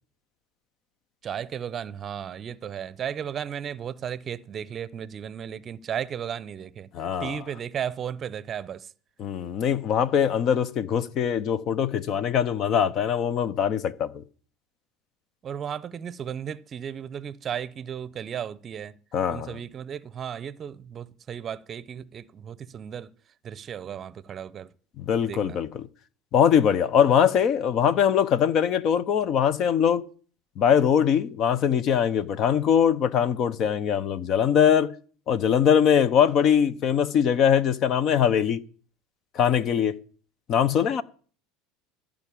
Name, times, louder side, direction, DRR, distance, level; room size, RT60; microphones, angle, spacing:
voice 1, 1.2-6.9 7.2-8.9 15.4-19.0 19.3-23.1 23.4-24.7 25.3-25.6, right 8 dB, 35° right, 0.6 m, -35 dB
voice 2, 6.9-7.4 9.2-14.2 19.1-19.6 25.0-25.9 26.3-30.0 30.6-34.9 35.3-38.6 39.3-40.0 40.5-41.0, left 8 dB, 50° left, 0.8 m, -22 dB
14.0 x 5.1 x 8.5 m
hypercardioid pair, 90°, 0 cm